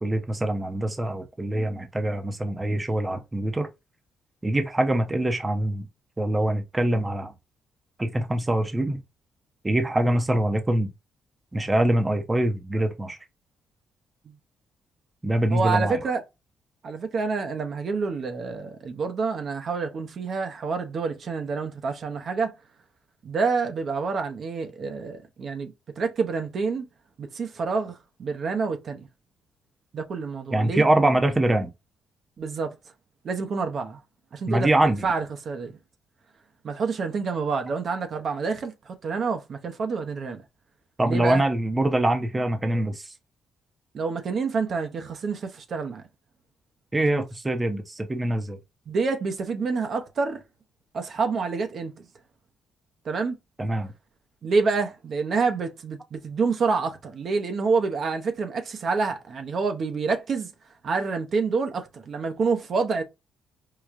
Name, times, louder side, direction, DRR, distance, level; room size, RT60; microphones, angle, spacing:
voice 1, 0.0-3.7 4.4-5.8 6.2-7.3 8.0-9.0 9.6-10.9 11.5-13.2 15.2-16.0 30.5-31.7 34.5-35.1 41.0-43.1 46.9-48.6 53.6-53.9, right 1 dB, 20° right, 0.7 m, -24 dB
voice 2, 15.5-16.2 16.8-22.5 23.2-26.9 27.2-29.1 29.9-30.8 32.4-32.7 33.2-34.0 34.3-35.7 36.6-40.4 41.0-41.4 43.9-46.0 47.1-47.2 48.9-50.4 50.9-51.9 53.0-53.4 54.4-60.5 60.8-63.0, right 4 dB, 55° right, 0.7 m, -27 dB
4.7 x 2.3 x 2.4 m
cardioid pair, 90°, 0 cm